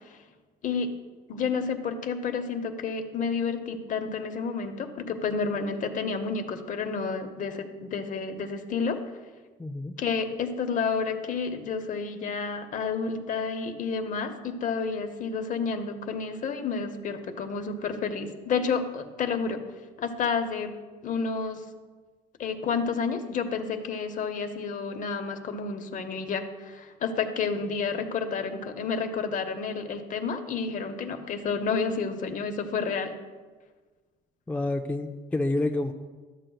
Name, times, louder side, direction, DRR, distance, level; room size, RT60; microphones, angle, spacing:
voice 1, 0.6-0.9 1.3-9.0 10.0-19.6 20.0-20.7 21.0-21.6 22.4-33.1, left 5 dB, 50° left, 7 dB, 0.8 m, -30 dB
voice 2, 9.6-9.9 34.5-35.9, left 2 dB, 10° left, 4 dB, 0.4 m, -28 dB
12.5 x 7.6 x 2.3 m, 1.4 s
cardioid pair, 110°, 17 cm